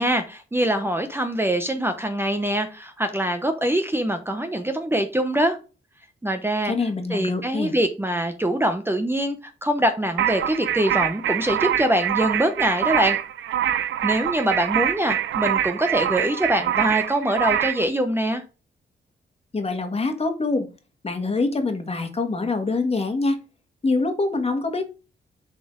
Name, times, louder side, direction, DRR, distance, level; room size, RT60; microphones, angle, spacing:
voice 1, 0.0-5.6 6.2-6.7 7.1-13.2 14.0-18.4, right 1 dB, 10° right, 7 dB, 0.9 m, -23 dB
voice 2, 6.6-7.7 19.5-20.7 21.0-23.4 23.8-24.8, left 3 dB, 30° left, 6 dB, 1.7 m, -24 dB
sound 1, 10.2-17.8, right 10 dB, 90° right, 0.6 m, -25 dB
7.3 x 4.3 x 3.8 m, 0.32 s
cardioid pair, 80°, 19 cm